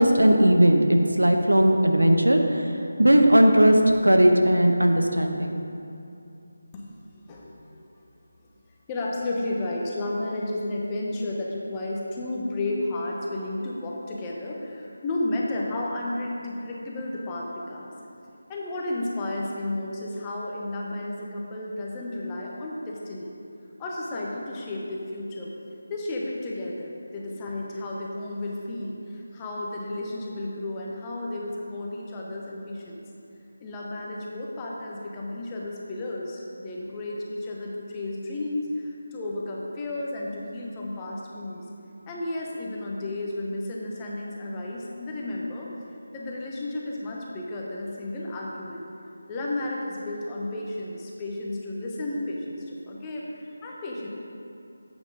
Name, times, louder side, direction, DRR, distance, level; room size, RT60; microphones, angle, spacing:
voice 1, 0.0-2.7 3.0-5.6, equal, 80° right, 4 dB, 0.9 m, -18 dB
voice 2, 8.9-17.9 18.5-23.3 23.8-25.5 25.9-33.0 33.6-41.6 42.1-45.7 46.1-48.8 49.3-54.1, left 1 dB, 15° left, -3 dB, 1.0 m, -32 dB
10.5 x 8.2 x 3.9 m, 2.6 s
figure-of-eight pair, 160°, 0 cm